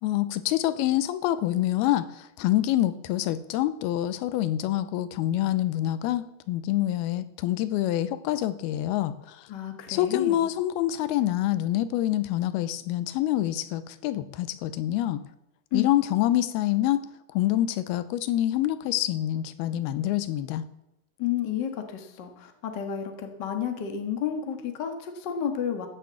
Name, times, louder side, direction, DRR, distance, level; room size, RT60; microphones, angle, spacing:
voice 1, 0.0-9.5 9.9-15.2 15.7-17.0 17.3-20.6, left 13 dB, 85° left, 14 dB, 2.6 m, -26 dB
voice 2, 9.5-10.5 15.7-15.9 21.2-25.9, left 8 dB, 65° left, 6 dB, 1.0 m, -31 dB
14.0 x 6.9 x 7.6 m, 0.85 s
omnidirectional pair, 4.4 m